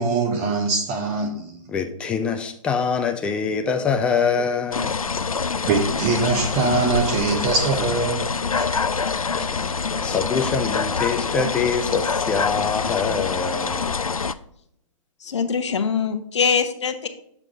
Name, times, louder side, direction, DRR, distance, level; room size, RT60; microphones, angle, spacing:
voice 1, 0.0-1.6 5.7-8.7, right 4 dB, 25° right, 0.8 m, -23 dB
voice 2, 1.7-5.0 9.3-9.7 10.0-13.9, left 5 dB, 5° left, 0.3 m, -24 dB
sound 1, 4.7-14.3, left 5 dB, 90° left, 0.4 m, -25 dB
voice 3, 15.2-17.1, left 6 dB, 55° left, 0.9 m, -23 dB
7.0 x 5.9 x 3.5 m
figure-of-eight pair, 125°, 18 cm